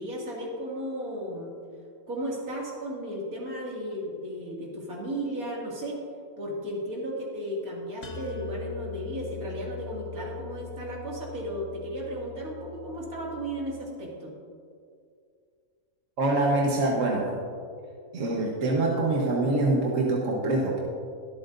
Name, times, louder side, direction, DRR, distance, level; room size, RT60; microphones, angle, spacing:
voice 1, 0.0-1.5 2.1-6.0 6.4-14.3, right 1 dB, 80° right, -3 dB, 2.8 m, -34 dB
sound 1, 8.0-13.8, left 6 dB, 60° left, 1.3 m, -41 dB
voice 2, 16.2-17.3 18.1-20.8, right 2 dB, 65° right, -2 dB, 1.5 m, -25 dB
23.0 x 8.5 x 2.6 m, 2.3 s
omnidirectional pair, 1.5 m